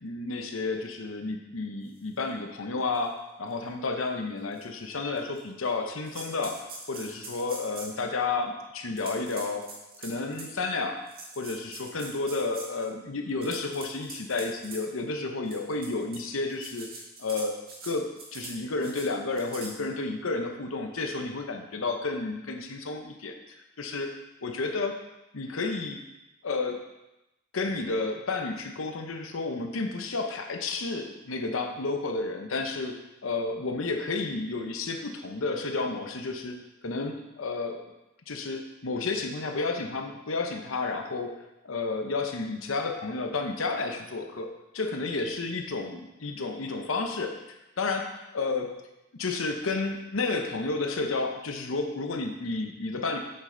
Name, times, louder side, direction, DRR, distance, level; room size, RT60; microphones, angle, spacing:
voice 1, 0.0-9.7 10.0-11.0 11.4-16.9 17.2-17.6 17.8-24.1 24.4-25.0 25.3-26.0 26.4-26.9 27.5-36.6 36.8-37.8 38.3-41.4 41.6-48.8 49.1-53.2, left 3 dB, 70° left, 4 dB, 0.8 m, -31 dB
sound 1, 2.2-2.3 2.9-3.1 3.5-3.6 4.5-4.6 5.2-5.7 6.0-8.0 9.0-10.5 11.1-12.9 13.3-14.8 15.5-16.2 16.5-17.9 18.2-18.5 18.8-19.1 19.4-19.7, right 3 dB, 50° right, 2.0 m, -43 dB
8.2 x 6.6 x 3.8 m, 0.95 s
head